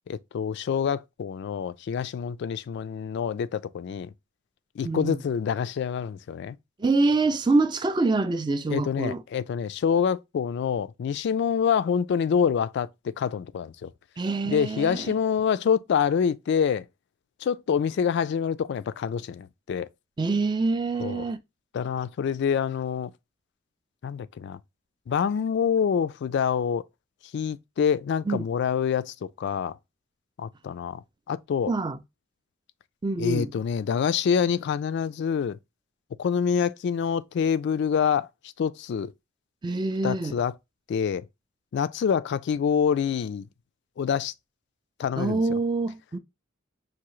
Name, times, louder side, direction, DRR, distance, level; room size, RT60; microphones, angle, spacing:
voice 1, 0.1-4.1 4.8-6.6 8.7-13.9 14.5-16.9 17.4-19.9 21.0-21.2 21.7-23.1 24.0-24.6 25.1-26.8 27.3-29.8 30.4-31.0 31.3-31.7 33.2-35.6 36.2-38.3 38.6-39.1 40.0-40.5 40.9-41.3 41.7-43.5 44.0-44.3 45.0-45.6, left 7 dB, 60° left, 0.3 m, -26 dB
voice 2, 4.8-5.2 6.8-9.2 14.2-15.1 20.2-21.4 28.3-28.5 31.7-32.0 33.0-33.5 39.6-40.4 45.2-46.2, right 3 dB, 20° right, 0.4 m, -25 dB
5.8 x 2.6 x 3.0 m
head